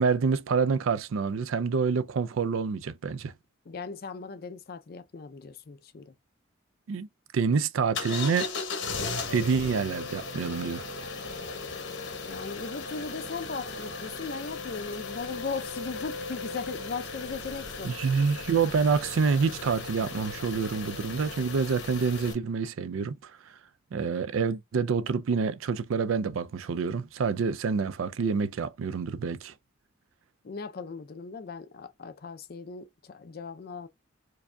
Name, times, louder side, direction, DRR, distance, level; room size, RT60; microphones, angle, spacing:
voice 1, 0.0-3.3 6.9-7.1 7.3-8.5 9.3-10.8 17.8-23.3 23.9-29.5, right 5 dB, 75° right, 0.4 m, -27 dB
voice 2, 3.7-6.1 12.3-17.9 30.4-33.9, left 4 dB, 45° left, 0.4 m, -38 dB
sound 1, 7.9-22.3, left 4 dB, 65° left, 0.9 m, -37 dB
4.7 x 2.6 x 2.2 m
head